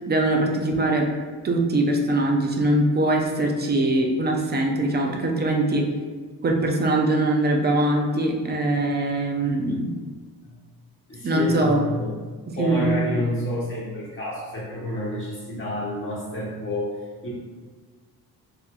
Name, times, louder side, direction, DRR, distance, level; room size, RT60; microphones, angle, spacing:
voice 1, 0.1-1.1 1.4-5.9 6.4-9.9 11.2-11.8 12.6-13.2, right 1 dB, 25° right, 1 dB, 0.5 m, -22 dB
voice 2, 11.1-12.1 12.5-17.3, left 1 dB, 30° left, -6 dB, 1.3 m, -29 dB
4.2 x 2.7 x 2.4 m, 1.5 s
cardioid pair, 130°, 39 cm